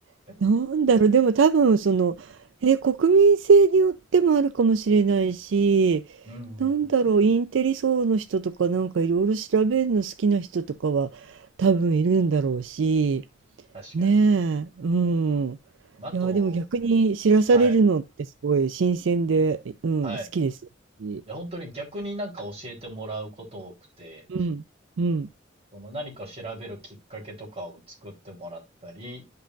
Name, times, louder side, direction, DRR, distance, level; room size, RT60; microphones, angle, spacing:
voice 1, 0.4-6.2 6.6-13.2 13.9-15.6 16.1-20.5 21.0-21.2 24.3-24.6 25.0-25.3, right 5 dB, 75° right, 0.4 m, -21 dB
voice 2, 6.3-6.9 13.7-14.2 16.0-16.7 17.5-17.7 20.0-20.3 21.3-24.3 25.7-29.2, right 1 dB, 35° right, 3.9 m, -38 dB
11.0 x 5.4 x 2.5 m
head